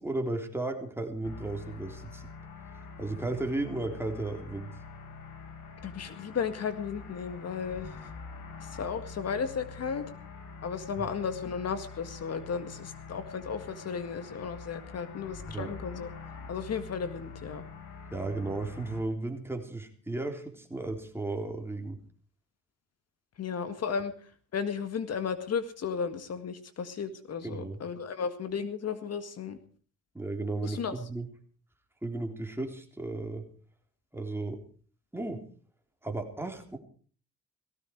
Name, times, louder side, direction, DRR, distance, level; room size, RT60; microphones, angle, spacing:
voice 1, 0.0-2.2 3.0-4.7 11.0-11.1 15.5-15.7 18.1-22.0 27.4-27.8 30.1-31.3 32.0-33.4 34.1-34.6 35.1-35.4 36.0-36.8, right 2 dB, 10° right, 3 dB, 3.7 m, -34 dB
sound 1, 1.2-19.0, left 4 dB, 90° left, 4.4 m, -45 dB
voice 2, 5.8-7.9 8.6-10.1 10.6-16.1 16.5-17.6 23.4-24.1 24.5-29.6 30.6-30.9, left 6 dB, 55° left, 10 dB, 1.9 m, -34 dB
18.5 x 16.0 x 4.8 m, 0.43 s
cardioid pair, 90°, 30 cm